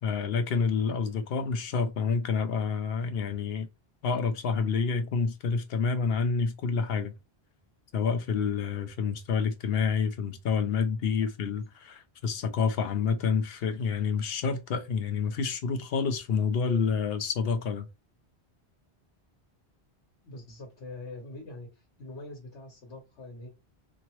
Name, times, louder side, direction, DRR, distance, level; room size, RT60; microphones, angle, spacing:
voice 1, 0.0-3.7 4.0-7.1 7.9-17.9, left 5 dB, 70° left, 0.7 m, -28 dB
voice 2, 20.2-23.5, left 2 dB, 90° left, 1.2 m, -44 dB
2.7 x 2.6 x 2.9 m
omnidirectional pair, 1.1 m